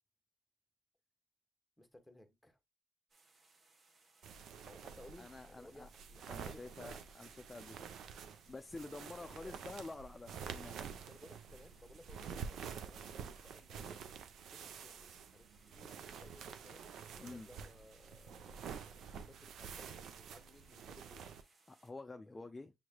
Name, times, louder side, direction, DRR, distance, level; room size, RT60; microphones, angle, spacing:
voice 1, 1.8-2.6 4.7-7.3 9.4-9.6 11.0-16.9 17.2-21.3 22.3-22.5, left 1 dB, 5° left, 1.2 m, -60 dB
sound 1, 3.1-21.9, right 3 dB, 45° right, 1.1 m, -69 dB
sound 2, 4.2-21.4, right 7 dB, 75° right, 0.6 m, -49 dB
voice 2, 5.2-5.9 6.3-7.7 8.5-10.8 17.2-17.5 21.7-22.7, left 3 dB, 20° left, 0.4 m, -49 dB
7.2 x 3.1 x 2.2 m
cardioid pair, 90°, 0 cm